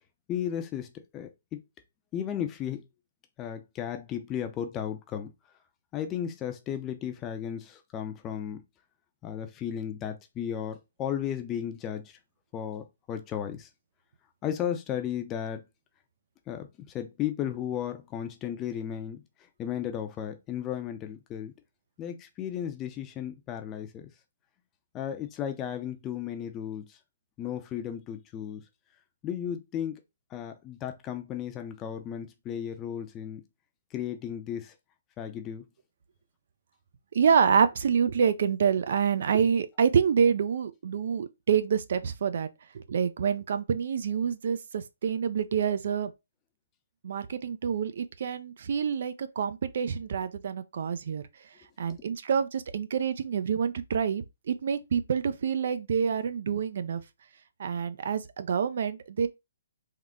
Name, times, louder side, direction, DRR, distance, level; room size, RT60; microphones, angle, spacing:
voice 1, 0.3-1.6 2.1-2.8 3.4-5.3 5.9-8.6 9.2-12.2 12.5-13.7 14.4-15.6 16.5-16.7 16.9-19.2 19.6-21.5 22.0-24.1 24.9-26.9 27.4-28.6 29.2-30.0 30.3-33.4 33.9-34.7 35.2-35.6 51.9-52.0, left 9 dB, 20° left, 0.5 m, -34 dB
voice 2, 37.1-42.5 42.7-46.1 47.0-51.2 51.8-57.0 57.6-59.3, right 7 dB, 60° right, 0.4 m, -27 dB
3.7 x 2.1 x 3.5 m
hypercardioid pair, 155°, 0 cm